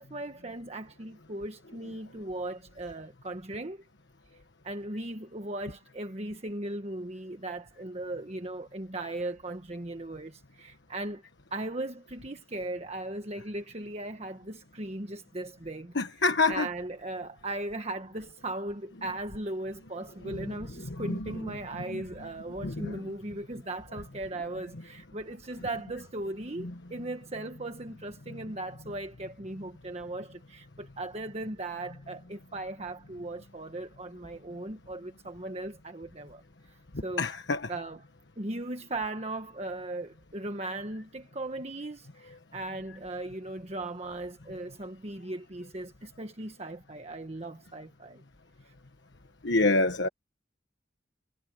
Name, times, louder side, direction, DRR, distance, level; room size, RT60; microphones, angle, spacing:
voice 1, 0.0-3.8 4.6-11.2 11.5-15.9 16.5-36.4 36.7-37.2 37.7-38.0 38.4-48.2 48.7-48.8, right 2 dB, 35° right, 1.4 m, -38 dB
voice 2, 15.9-16.7 20.2-21.5 21.8-22.3 22.6-23.0 26.6-26.7 36.9-37.7 49.4-50.1, left 3 dB, 65° left, 1.4 m, -28 dB
head